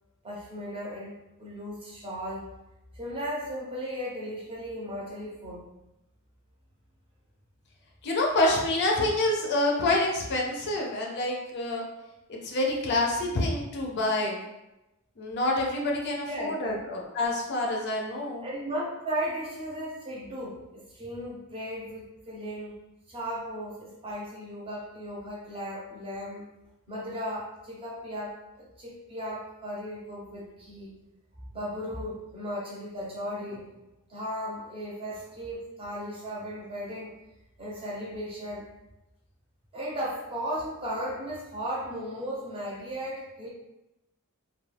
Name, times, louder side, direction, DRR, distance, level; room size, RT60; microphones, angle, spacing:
voice 1, 0.2-2.5 2.9-5.6 16.3-16.8 18.4-22.7 23.1-26.5 26.9-31.0 31.5-33.7 34.1-37.1 37.6-38.7 39.7-43.5, equal, 25° right, -4 dB, 0.7 m, -36 dB
voice 2, 8.0-11.9 12.4-14.4 15.2-18.4, left 2 dB, 50° left, 0 dB, 0.4 m, -27 dB
2.3 x 2.3 x 3.2 m, 0.96 s
head